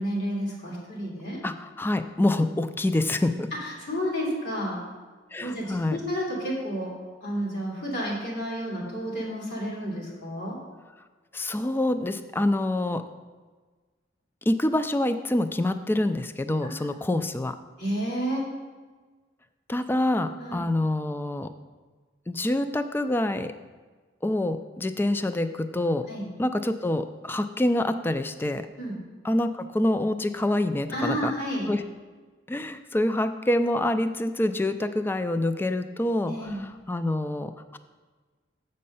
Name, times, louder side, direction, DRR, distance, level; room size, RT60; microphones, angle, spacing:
voice 1, 0.0-1.4 3.6-4.8 5.4-6.9 7.2-10.6 16.6-16.7 17.8-18.4 20.4-20.6 26.1-26.3 28.8-28.9 30.9-31.7 36.2-36.6, equal, 75° left, -5 dB, 2.6 m, -31 dB
voice 2, 1.4-3.5 5.3-6.0 11.3-13.0 14.5-17.6 19.7-21.5 22.3-23.5 24.2-26.1 26.4-28.7 29.2-31.3 31.7-31.8 32.5-37.8, left 1 dB, 10° left, 10 dB, 0.3 m, -26 dB
7.5 x 5.3 x 5.5 m, 1.4 s
head